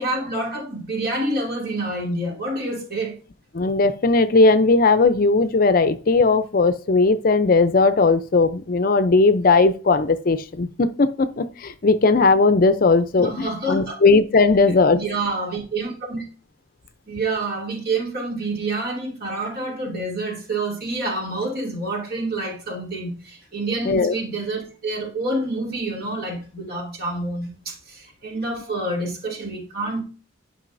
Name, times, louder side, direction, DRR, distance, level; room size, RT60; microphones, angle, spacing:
voice 1, 0.0-3.1 13.2-14.0 14.6-16.2 17.1-30.0, right 2 dB, 50° right, 2.5 m, -28 dB
voice 2, 3.5-15.0 23.8-24.1, left 3 dB, 45° left, 0.5 m, -18 dB
10.5 x 5.4 x 2.6 m
head